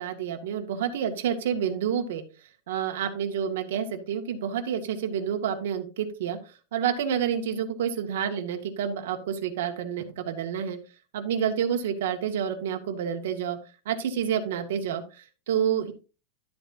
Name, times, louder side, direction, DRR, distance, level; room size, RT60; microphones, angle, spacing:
voice 1, 0.0-2.2 2.7-10.8 11.1-13.6 13.9-15.9, right 8 dB, 80° right, 5 dB, 1.9 m, -29 dB
12.5 x 7.9 x 2.7 m, 0.32 s
supercardioid pair, 165°, 0 cm